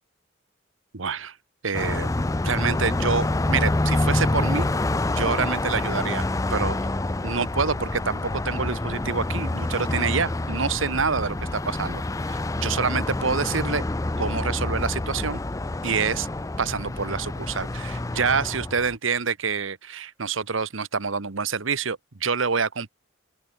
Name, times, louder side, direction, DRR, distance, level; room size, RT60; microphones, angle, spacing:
voice 1, 0.9-1.3 1.6-2.1 2.4-4.7 5.1-6.8 7.2-12.0 12.3-13.8 14.2-15.4 15.8-16.3 16.6-22.9, right 5 dB, 85° right, 1.2 m, -27 dB
Car passing by, 1.7-18.9, left 2 dB, 15° left, 0.4 m, -27 dB
open air
head